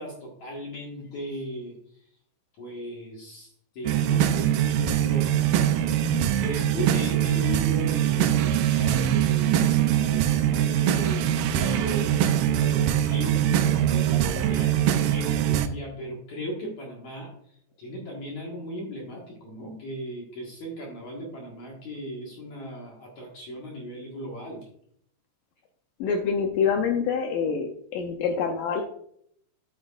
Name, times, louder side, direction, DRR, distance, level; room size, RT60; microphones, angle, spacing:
voice 1, 0.0-1.8 2.6-17.3 17.8-24.7, equal, 55° left, -2 dB, 2.5 m, -37 dB
sound 1, 3.8-15.7, right 10 dB, 90° right, 2.0 m, -23 dB
voice 2, 26.0-28.8, left 6 dB, 85° left, 3 dB, 1.9 m, -26 dB
9.4 x 8.7 x 2.5 m, 0.67 s
omnidirectional pair, 4.8 m